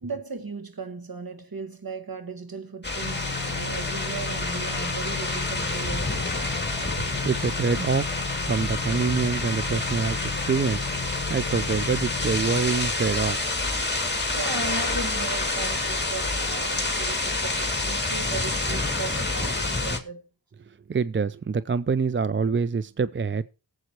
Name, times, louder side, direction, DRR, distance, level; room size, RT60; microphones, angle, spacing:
voice 1, 0.0-6.4 14.3-20.2, right 4 dB, 55° right, 1.9 m, -37 dB
sound 1, 2.8-20.0, left 2 dB, 25° left, 2.4 m, -28 dB
sound 2, 3.0-12.6, left 6 dB, 55° left, 1.2 m, -36 dB
voice 2, 7.0-10.2 10.5-13.4 20.9-23.4, right 5 dB, 30° right, 0.5 m, -26 dB
19.0 x 7.7 x 3.0 m
cardioid pair, 40°, 43 cm